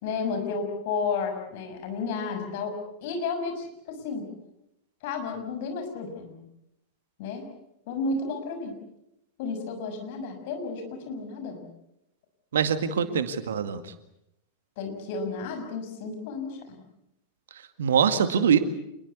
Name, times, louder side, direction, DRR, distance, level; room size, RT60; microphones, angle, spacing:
voice 1, 0.0-2.7 3.0-4.3 5.0-6.4 7.2-7.4 7.9-8.7 9.4-11.6 12.9-13.1 14.8-16.8, left 4 dB, 50° left, 5 dB, 6.3 m, -32 dB
voice 2, 12.5-13.8 17.8-18.6, right 7 dB, 65° right, 11 dB, 2.0 m, -23 dB
27.5 x 21.5 x 8.3 m, 0.82 s
figure-of-eight pair, 90°, 0 cm